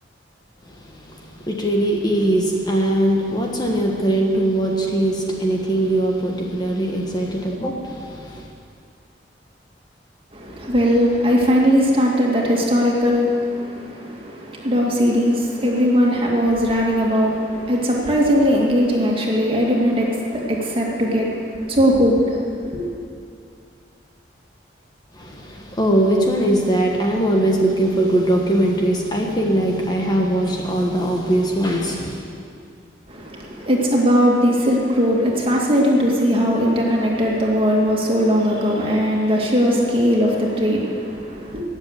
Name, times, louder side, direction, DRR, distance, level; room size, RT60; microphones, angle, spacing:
voice 1, 1.5-8.4 25.2-32.2, right 1 dB, 25° left, 0 dB, 1.3 m, -20 dB
voice 2, 10.3-22.9 33.1-41.6, equal, 30° right, -2 dB, 2.4 m, -19 dB
18.0 x 7.6 x 8.1 m, 2.3 s
head